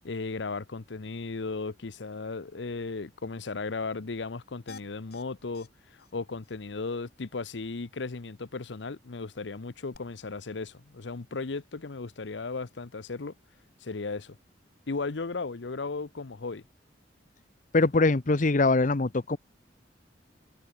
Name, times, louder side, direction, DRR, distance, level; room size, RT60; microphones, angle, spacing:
voice 1, 0.0-13.3 13.8-14.4 14.9-16.6, left 3 dB, 85° left, 0.8 m, -36 dB
sound 1, 4.7-5.2 5.5-5.7 6.0-6.1 6.4-6.5 9.9-10.0, left 4 dB, 65° left, 3.7 m, -48 dB
voice 2, 17.7-19.4, left 3 dB, 45° left, 0.8 m, -23 dB
head